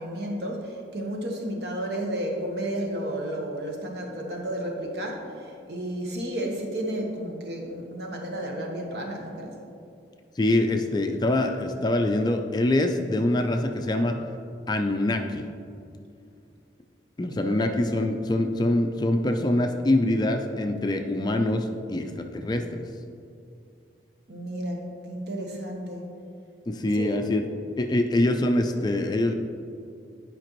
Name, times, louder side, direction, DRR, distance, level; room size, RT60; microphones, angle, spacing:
voice 1, 0.0-9.5 17.4-17.7 17.9-18.0 24.3-26.1 27.0-27.2, right 1 dB, 65° right, 0 dB, 1.1 m, -32 dB
voice 2, 10.4-14.2 14.7-15.5 17.2-22.8 26.7-27.4 27.8-29.3, left 1 dB, 25° left, 5 dB, 0.3 m, -24 dB
10.5 x 5.1 x 3.0 m, 2.5 s
head